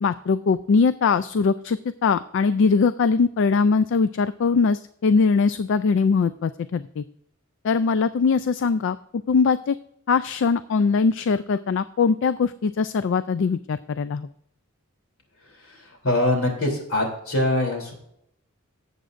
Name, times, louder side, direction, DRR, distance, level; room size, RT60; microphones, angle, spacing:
voice 1, 0.0-7.0 7.6-9.0 9.3-9.8 10.1-14.3, left 5 dB, 60° left, 13 dB, 0.3 m, -21 dB
voice 2, 15.4-17.9, left 1 dB, 75° left, 2 dB, 3.1 m, -24 dB
18.0 x 8.0 x 2.5 m, 0.74 s
head